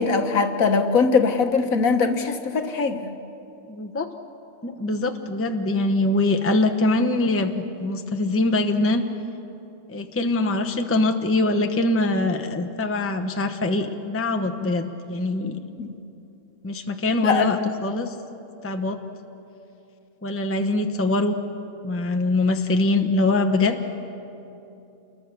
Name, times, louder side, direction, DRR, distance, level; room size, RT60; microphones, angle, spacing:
voice 1, 0.0-3.1 15.8-15.9 17.2-17.5, left 4 dB, 65° left, 6 dB, 1.6 m, -21 dB
voice 2, 3.7-4.1 4.6-9.0 9.9-15.6 16.6-18.1 18.6-19.0 20.2-21.3 21.8-23.9, left 2 dB, 10° left, 6 dB, 0.8 m, -23 dB
28.5 x 22.0 x 6.9 m, 2.9 s
omnidirectional pair, 1.6 m